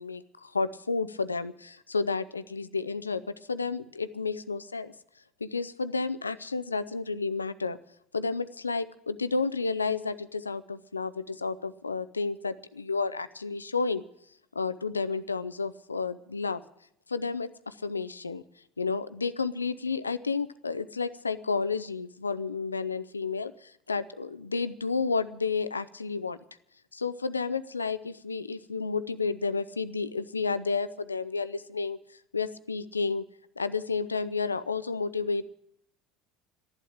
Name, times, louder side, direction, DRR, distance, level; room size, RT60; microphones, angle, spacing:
voice 1, 0.0-4.9 5.4-7.8 8.1-14.1 14.5-16.6 17.1-18.4 18.8-26.4 26.9-32.0 32.3-33.2 33.6-35.5, left 4 dB, 90° left, 14 dB, 0.6 m, -31 dB
14.0 x 11.5 x 8.7 m, 0.72 s
figure-of-eight pair, 65°, 0 cm